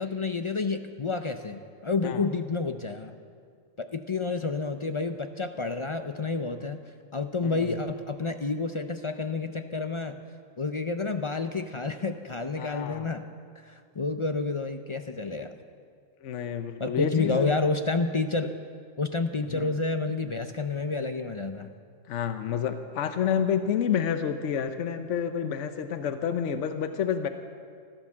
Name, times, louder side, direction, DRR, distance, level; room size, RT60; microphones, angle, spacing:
voice 1, 0.0-3.1 3.8-6.8 7.1-10.2 10.6-13.2 13.6-15.6 16.8-18.5 19.0-21.7, left 3 dB, 40° left, 7 dB, 0.4 m, -29 dB
voice 2, 7.4-7.7 12.6-13.1 16.2-17.5 19.5-19.7 22.1-27.3, left 8 dB, 70° left, 9 dB, 1.1 m, -29 dB
16.0 x 12.5 x 7.2 m, 2.2 s
omnidirectional pair, 1.4 m